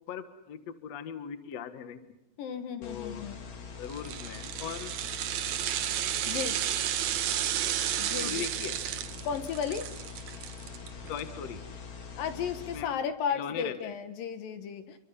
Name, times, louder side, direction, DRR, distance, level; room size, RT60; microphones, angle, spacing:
voice 1, 0.0-2.1 2.8-3.3 3.8-4.9 8.2-8.8 11.1-11.6 12.7-13.9, left 8 dB, 55° left, 9 dB, 2.3 m, -39 dB
voice 2, 2.4-3.4 6.3-6.6 8.0-8.5 9.2-9.9 12.2-15.0, left 7 dB, 70° left, 9 dB, 3.0 m, -34 dB
sound 1, 2.8-12.8, left 5 dB, 40° left, 2.4 m, -44 dB
sound 2, 3.9-11.2 11.5-11.6, right 11 dB, 65° right, 1.9 m, -32 dB
29.5 x 23.5 x 5.6 m, 0.84 s
omnidirectional pair, 4.2 m